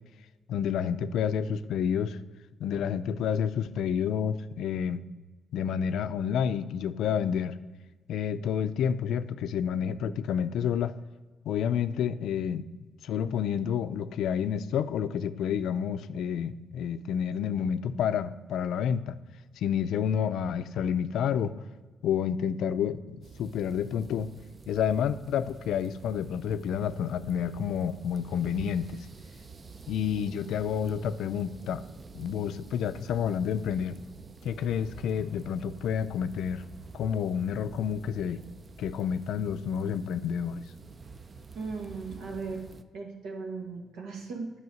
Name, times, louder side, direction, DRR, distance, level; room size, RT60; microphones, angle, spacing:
voice 1, 0.5-2.2 2.6-5.0 5.5-7.6 8.1-11.0 11.5-12.7 13.0-19.2 19.6-21.5 22.0-24.3 24.7-29.1 29.9-31.8 32.1-33.9 34.4-36.6 36.9-38.4 38.8-40.6, left 8 dB, 80° left, 12 dB, 0.4 m, -29 dB
sound 1, 23.2-42.8, right 4 dB, 35° right, 0.5 m, -48 dB
voice 2, 41.5-42.6 42.9-44.5, right 4 dB, 90° right, 1 dB, 1.6 m, -37 dB
9.5 x 5.5 x 6.3 m, 1.3 s
cardioid pair, 90°, 0 cm